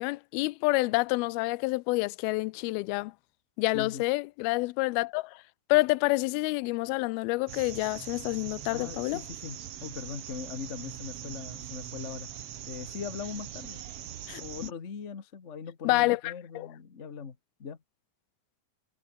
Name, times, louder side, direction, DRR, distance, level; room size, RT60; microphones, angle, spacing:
voice 1, 0.0-3.1 3.6-5.3 5.7-9.2 14.3-14.7 15.9-16.7, left 22 dB, 90° left, 2.5 m, -28 dB
voice 2, 3.7-4.0 8.7-12.3 12.7-13.8 14.4-17.8, left 6 dB, 70° left, 0.6 m, -40 dB
sound 1, 7.5-14.7, right 10 dB, 65° right, 1.5 m, -42 dB
omnidirectional pair, 4.3 m